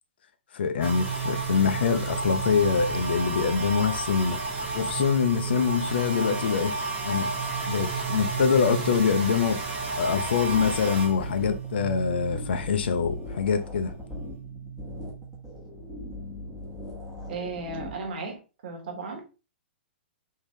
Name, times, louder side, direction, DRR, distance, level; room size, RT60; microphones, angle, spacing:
voice 1, 0.5-6.7 7.0-7.3 7.7-13.9, left 6 dB, 65° left, 0.5 m, -25 dB
sound 1, 0.8-13.5 13.8-16.3, right 4 dB, 30° right, 1.1 m, -32 dB
sound 2, 10.4-18.1, left 2 dB, ahead, 1.1 m, -40 dB
voice 2, 17.3-19.2, right 3 dB, 55° right, 1.3 m, -35 dB
3.3 x 2.7 x 3.1 m
hypercardioid pair, 125°, 6 cm